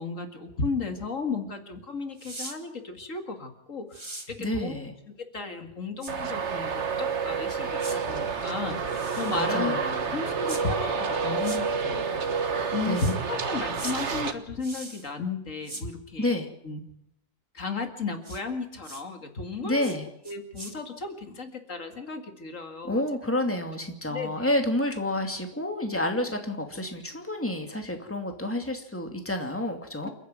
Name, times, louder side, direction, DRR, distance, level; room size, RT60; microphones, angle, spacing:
voice 1, 0.0-4.8 5.2-9.7 10.1-11.0 11.2-16.3 16.6-16.8 17.5-19.9 20.2-23.0 24.1-24.5 30.0-30.1, left 4 dB, 70° left, 6 dB, 2.5 m, -34 dB
sound 1, 2.2-2.6 3.9-4.3 6.0-6.1 7.8-8.0 8.9-9.5 10.5-10.6 11.4-11.6 12.9-13.2 13.7-14.0 14.6-15.1 15.6-15.8 18.2-18.4 18.8-19.0 19.8-20.0 20.2-20.7, right 2 dB, 20° right, 1.9 m, -40 dB
voice 2, 4.4-4.9 9.3-10.2 12.8-13.1 16.2-16.5 19.6-20.1 22.8-30.1, left 1 dB, 10° left, 4 dB, 2.6 m, -29 dB
Traffic noise roadway noise, 6.1-14.3, right 5 dB, 60° right, 1.7 m, -29 dB
28.5 x 10.0 x 9.3 m, 0.78 s
omnidirectional pair, 1.4 m